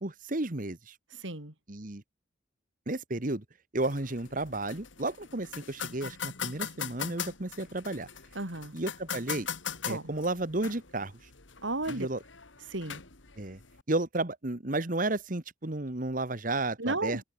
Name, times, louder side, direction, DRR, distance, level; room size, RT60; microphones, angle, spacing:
voice 1, 0.0-0.9 1.7-2.0 2.9-3.4 3.7-8.1 8.7-9.5 9.8-11.1 11.9-12.2 13.4-13.6 13.9-17.2, right 2 dB, 45° right, 1.5 m, -32 dB
voice 2, 1.1-1.5 8.3-8.7 9.9-10.1 11.6-12.1 12.7-13.0 16.8-17.2, right 2 dB, 85° right, 4.4 m, -33 dB
sound 1, 3.8-13.8, left 7 dB, 85° left, 3.2 m, -41 dB
head